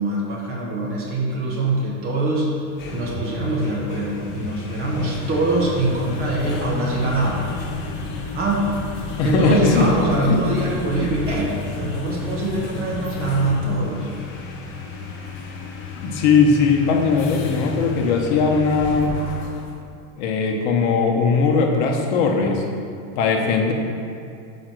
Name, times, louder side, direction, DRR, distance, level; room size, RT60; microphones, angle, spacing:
voice 1, 0.0-2.5 2.9-7.4 8.3-8.7 9.2-14.1, right 2 dB, 30° right, -4 dB, 1.4 m, -23 dB
sound 1, 2.6-19.8, left 4 dB, 30° left, 0.7 m, -32 dB
voice 2, 9.2-9.9 10.3-10.4 11.0-11.1 16.0-19.2 20.2-22.6 23.2-23.7, left 4 dB, 55° left, 2 dB, 1.0 m, -19 dB
6.2 x 5.1 x 6.2 m, 2.4 s
supercardioid pair, 165°, 42 cm